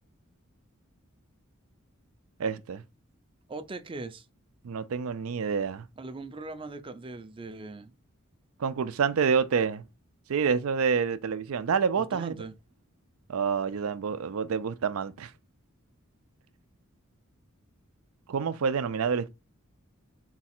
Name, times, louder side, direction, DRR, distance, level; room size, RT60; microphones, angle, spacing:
voice 1, 2.4-2.8 4.6-5.8 8.6-9.8 10.3-12.3 13.3-15.3 18.3-19.3, right 6 dB, 85° right, 0.4 m, -27 dB
voice 2, 3.5-4.3 6.0-7.9 12.0-12.5, right 3 dB, 25° right, 0.4 m, -40 dB
4.0 x 2.4 x 4.3 m
head